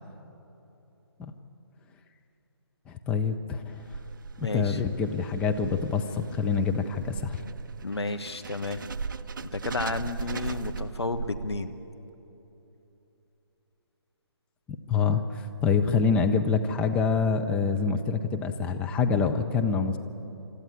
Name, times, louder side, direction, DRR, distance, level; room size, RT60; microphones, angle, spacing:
voice 1, 2.9-3.8 4.4-7.4 14.9-20.0, left 5 dB, 10° left, 5 dB, 0.6 m, -26 dB
sound 1, 3.6-11.9, right 5 dB, 50° right, 0.5 m, -38 dB
voice 2, 4.4-4.8 7.8-8.9 9.4-11.7, left 3 dB, 75° left, 8 dB, 1.4 m, -32 dB
26.0 x 14.0 x 9.6 m, 3.0 s
figure-of-eight pair, 145°, 14 cm